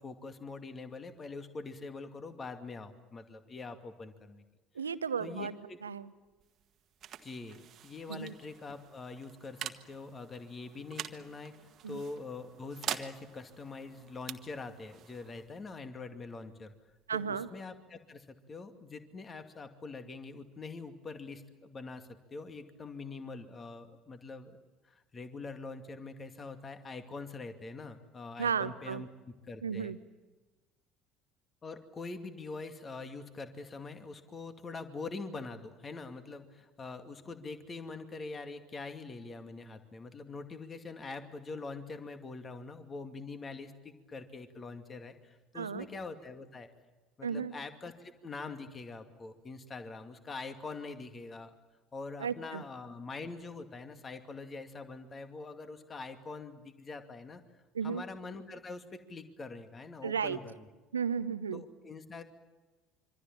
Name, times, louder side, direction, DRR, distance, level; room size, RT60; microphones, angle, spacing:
voice 1, 0.0-4.4 5.2-5.8 7.2-16.7 17.1-24.6 24.8-29.9 31.6-46.7 47.2-51.5 51.9-57.4 57.8-60.7 61.5-62.2, left 3 dB, 30° left, 7 dB, 2.4 m, -44 dB
voice 2, 4.7-5.5 5.8-6.1 8.1-8.3 11.8-12.0 17.1-17.5 28.4-29.0 29.6-30.0 45.5-45.9 47.2-47.5 52.2-52.6 57.7-58.0 60.0-60.4 60.9-61.6, right 6 dB, 80° right, 14 dB, 0.8 m, -34 dB
sound 1, 6.2-17.6, right 10 dB, 45° right, 1.5 m, -46 dB
26.0 x 25.5 x 7.5 m, 1.2 s
figure-of-eight pair, 60°, 0 cm